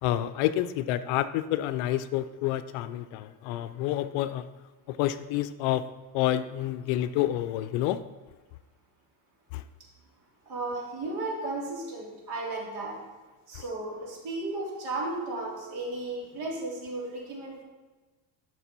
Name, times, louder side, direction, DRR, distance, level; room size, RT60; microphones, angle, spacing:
voice 1, 0.0-4.5 4.9-5.9 6.1-8.0 9.5-9.6, left 13 dB, 70° left, 13 dB, 0.6 m, -28 dB
voice 2, 10.5-12.9 13.5-17.6, right 2 dB, 50° right, -4 dB, 3.5 m, -34 dB
12.5 x 6.1 x 4.5 m, 1.3 s
cardioid pair, 155°, 50 cm